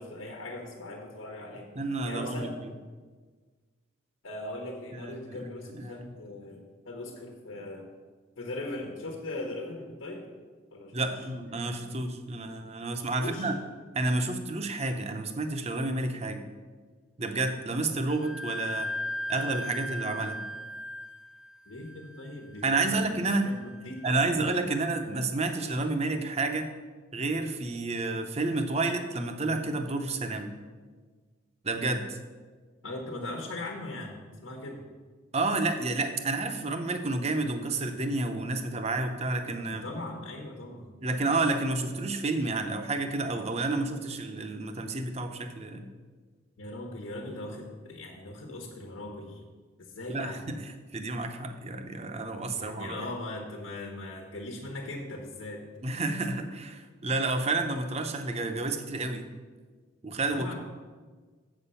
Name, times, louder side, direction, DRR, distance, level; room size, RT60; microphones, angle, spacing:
voice 1, 0.0-1.7 2.0-2.6 4.2-7.9 8.4-10.4 10.7-11.1 13.0-13.5 21.7-23.1 23.4-24.2 32.8-34.8 39.7-41.0 46.6-49.4 49.8-50.4 52.5-55.6 60.3-60.5, left 2 dB, 85° left, 1 dB, 1.3 m, -39 dB
voice 2, 1.7-2.5 4.9-6.1 10.9-13.6 13.9-16.5 17.2-18.9 19.3-20.4 22.6-23.5 24.0-26.7 27.1-30.5 31.6-32.2 35.3-39.8 41.0-45.9 50.1-53.0 55.8-59.2 60.0-60.5, right 2 dB, 35° right, 7 dB, 0.7 m, -30 dB
Wind instrument woodwind instrument, 18.1-25.5, left 1 dB, 5° right, 0.4 m, -39 dB
7.7 x 7.1 x 5.6 m, 1.4 s
head